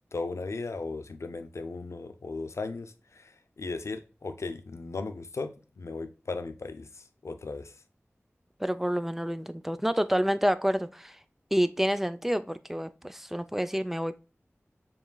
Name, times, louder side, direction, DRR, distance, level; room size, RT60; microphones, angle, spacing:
voice 1, 0.1-7.7, left 3 dB, 85° left, 0.5 m, -37 dB
voice 2, 8.6-11.2 11.5-14.2, equal, 5° right, 0.4 m, -28 dB
7.0 x 3.1 x 2.2 m
wide cardioid pair, 55°, 5 cm